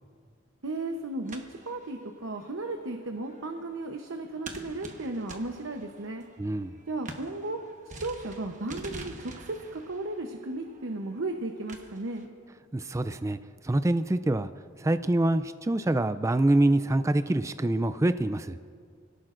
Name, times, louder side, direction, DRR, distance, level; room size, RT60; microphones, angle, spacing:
voice 1, 0.6-1.4 1.7-6.2 6.9-7.6 8.0-12.3, right 2 dB, 75° right, 4 dB, 0.9 m, -35 dB
sound 1, 1.0-12.3, right 2 dB, 40° right, 1.2 m, -47 dB
voice 2, 6.4-6.7 12.7-13.4 13.6-14.5 14.8-18.6, right 1 dB, 15° right, 11 dB, 0.3 m, -25 dB
25.5 x 18.0 x 2.5 m, 2.1 s
head